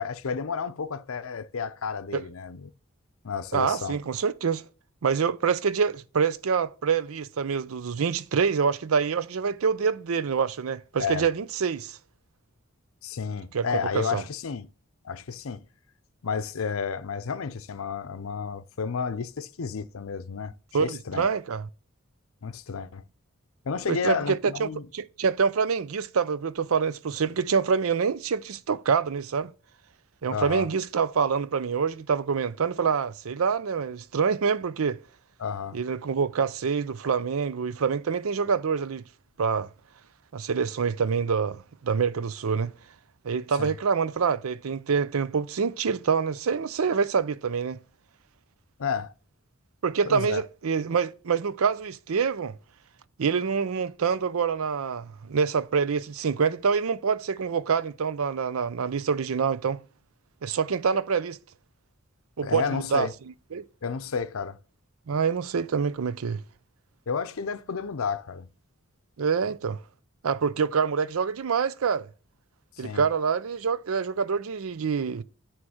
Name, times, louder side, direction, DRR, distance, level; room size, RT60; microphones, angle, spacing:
voice 1, 0.0-2.7 3.2-4.0 11.0-11.3 13.0-14.7 15.0-15.6 16.2-20.5 20.8-21.3 22.4-23.0 23.6-24.9 30.3-30.7 35.4-35.8 43.6-43.7 48.8-49.1 50.1-50.4 62.4-63.1 63.8-64.6 67.1-68.5 72.8-73.0, left 5 dB, 80° left, 0.6 m, -31 dB
voice 2, 3.5-4.6 5.0-12.0 13.5-14.2 20.7-21.7 23.9-29.5 30.2-35.0 35.7-39.0 39.4-39.7 40.3-42.7 43.2-47.8 49.8-52.6 53.2-59.8 60.4-61.4 62.4-63.1 63.5-63.6 65.1-66.4 69.2-69.8 70.2-72.1 72.8-75.2, right 6 dB, 90° right, 0.5 m, -26 dB
9.6 x 3.2 x 6.3 m
head